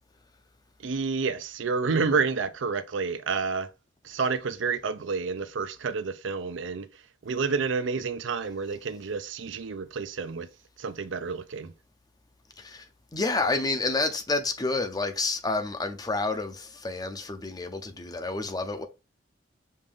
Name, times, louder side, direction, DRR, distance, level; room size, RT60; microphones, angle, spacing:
voice 1, 0.8-3.7 4.0-6.9 7.2-10.5 10.8-11.7, right 5 dB, 85° right, 0.6 m, -29 dB
voice 2, 13.1-18.9, left 3 dB, 20° left, 0.6 m, -29 dB
5.2 x 2.6 x 3.5 m
head